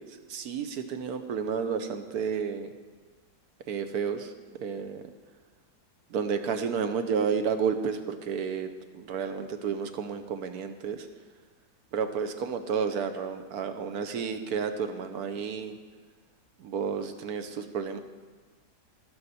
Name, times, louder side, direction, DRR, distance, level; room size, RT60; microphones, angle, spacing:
voice 1, 0.3-2.7 3.7-4.3 4.6-5.0 6.1-8.7 8.9-11.1 11.9-15.8 16.6-18.0, right 6 dB, 70° right, 8 dB, 1.2 m, -31 dB
17.5 x 6.5 x 4.2 m, 1.4 s
omnidirectional pair, 1.7 m